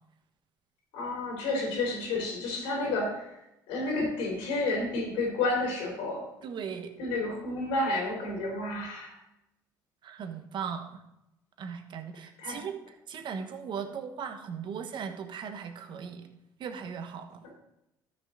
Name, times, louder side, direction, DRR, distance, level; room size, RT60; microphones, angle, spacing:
voice 1, 0.9-3.4 3.7-6.2 7.0-9.2 12.4-12.6, left 2 dB, 80° left, 0 dB, 3.9 m, -30 dB
voice 2, 6.4-6.9 10.0-11.0 11.6-12.8 13.1-16.3 16.6-17.4, right 7 dB, 55° right, 7 dB, 1.2 m, -38 dB
12.5 x 6.2 x 4.0 m, 0.87 s
supercardioid pair, 75°, 10 cm